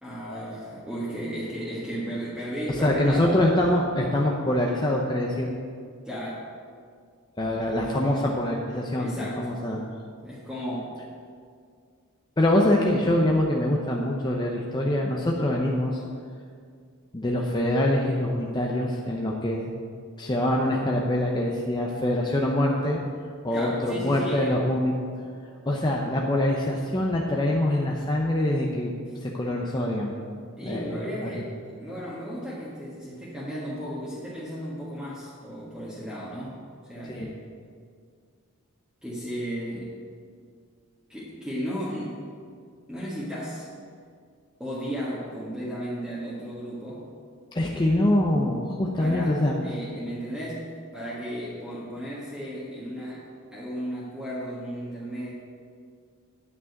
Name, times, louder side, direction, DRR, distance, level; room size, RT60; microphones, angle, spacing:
voice 1, 0.0-3.3 6.0-6.5 9.0-9.5 10.2-11.0 23.5-24.6 30.6-36.6 36.8-37.3 39.0-39.9 41.1-42.2 42.9-43.7 44.6-47.0 49.0-53.2 53.5-55.3, equal, 5° right, -9 dB, 1.5 m, -34 dB
voice 2, 2.8-5.5 7.4-9.8 12.4-16.0 17.1-19.7 20.2-23.0 23.4-24.9 25.7-28.9 29.2-30.1 30.6-31.3 37.1-37.3 47.5-49.6, left 1 dB, 20° left, -1 dB, 0.7 m, -24 dB
9.5 x 6.1 x 8.2 m, 2.2 s
head